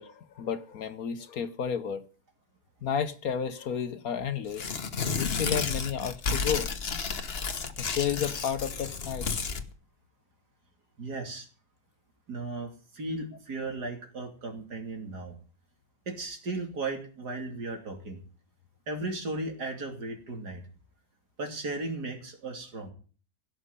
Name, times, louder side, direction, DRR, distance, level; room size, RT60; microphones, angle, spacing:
voice 1, 0.0-2.0 2.8-4.6 5.2-6.7 7.8-9.3, left 7 dB, 60° left, 1.3 m, -32 dB
Tearing, 4.5-9.6, left 5 dB, 40° left, 1.3 m, -32 dB
voice 2, 11.0-11.5 12.3-15.4 16.1-18.2 18.9-20.6 21.4-22.9, right 2 dB, 65° right, 3.4 m, -36 dB
16.5 x 6.5 x 9.8 m
omnidirectional pair, 1.9 m